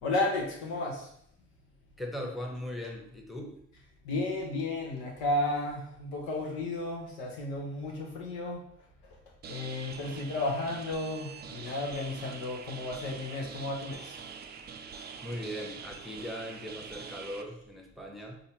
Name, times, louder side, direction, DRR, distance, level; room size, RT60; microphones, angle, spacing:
voice 1, 0.0-1.1 4.0-8.6 9.0-9.2 9.5-14.2, left 2 dB, 80° left, -1 dB, 0.9 m, -33 dB
voice 2, 2.0-3.6 10.0-10.2 15.2-18.4, equal, ahead, 0 dB, 0.9 m, -39 dB
sound 1, 9.4-17.4, right 6 dB, 30° right, 0.4 m, -45 dB
4.0 x 2.6 x 2.8 m, 0.69 s
hypercardioid pair, 55°, 32 cm